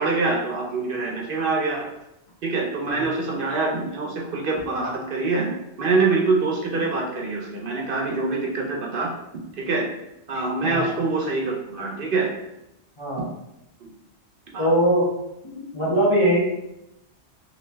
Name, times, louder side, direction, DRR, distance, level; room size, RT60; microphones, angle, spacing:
voice 1, 0.0-1.9 2.4-9.2 9.4-9.9 10.3-12.3 13.8-13.9 14.5-14.7, right 3 dB, 60° right, 0 dB, 0.7 m, -25 dB
voice 2, 14.6-15.0 15.5-16.4, equal, 30° left, -7 dB, 0.8 m, -21 dB
3.0 x 2.7 x 3.2 m, 0.86 s
omnidirectional pair, 1.1 m